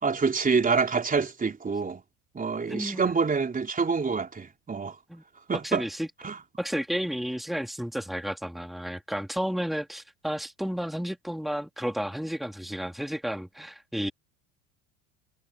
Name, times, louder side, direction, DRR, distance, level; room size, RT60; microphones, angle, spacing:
voice 1, 0.0-2.0 2.3-4.9 5.5-5.8 6.2-6.4, right 5 dB, 20° right, 3.8 m, -26 dB
voice 2, 2.7-3.1 5.1-5.2 5.6-6.1 6.6-14.1, equal, ahead, 3.6 m, -32 dB
hypercardioid pair, 95°, 41 cm